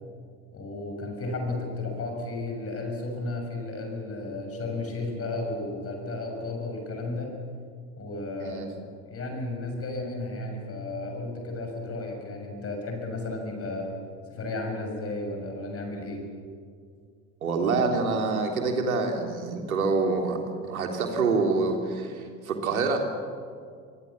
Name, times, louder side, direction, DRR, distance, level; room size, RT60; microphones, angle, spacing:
voice 1, 0.5-7.4 8.0-8.7 9.1-13.9 14.3-16.3, left 2 dB, 30° left, 3 dB, 6.6 m, -33 dB
voice 2, 17.4-23.0, right 4 dB, 75° right, 3 dB, 3.4 m, -26 dB
29.0 x 24.0 x 7.3 m, 2.2 s
figure-of-eight pair, 65°, 43 cm